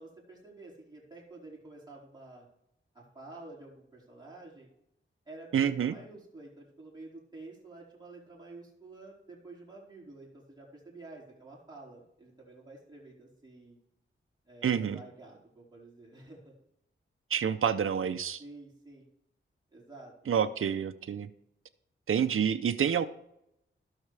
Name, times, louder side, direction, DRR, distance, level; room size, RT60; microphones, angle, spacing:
voice 1, 0.0-2.5 2.9-4.7 5.3-13.8 14.5-16.5 18.4-19.1 19.7-20.3, right 2 dB, 20° right, -4 dB, 4.5 m, -50 dB
voice 2, 5.5-5.9 14.6-15.0 17.3-18.4 20.3-21.3 22.1-23.1, right 8 dB, 85° right, 9 dB, 0.6 m, -28 dB
17.0 x 6.5 x 3.3 m, 0.79 s
wide cardioid pair, 135°, 21 cm